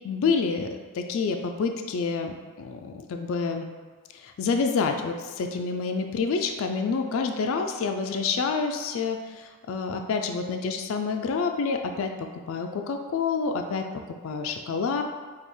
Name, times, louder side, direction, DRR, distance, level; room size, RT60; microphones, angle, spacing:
voice 1, 0.0-3.7 4.1-15.0, left 5 dB, 65° left, 5 dB, 0.3 m, -28 dB
5.2 x 2.3 x 3.1 m, 1.5 s
head